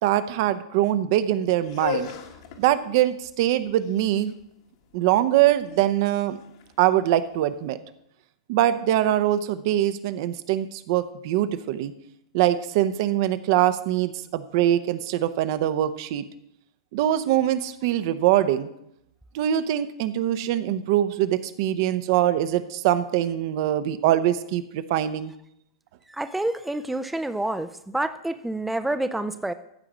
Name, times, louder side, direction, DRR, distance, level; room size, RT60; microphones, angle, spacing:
voice 1, 0.0-2.1 2.6-4.3 4.9-6.4 6.8-7.8 8.5-11.9 12.3-16.2 16.9-18.7 19.3-25.3, right 12 dB, 50° right, 11 dB, 0.8 m, -23 dB
sound 1, 1.6-7.5, left 6 dB, 55° left, 1.7 m, -37 dB
voice 2, 26.1-29.5, right 1 dB, 5° right, 10 dB, 0.5 m, -28 dB
14.0 x 4.9 x 7.1 m, 0.78 s
figure-of-eight pair, 105°, 3 cm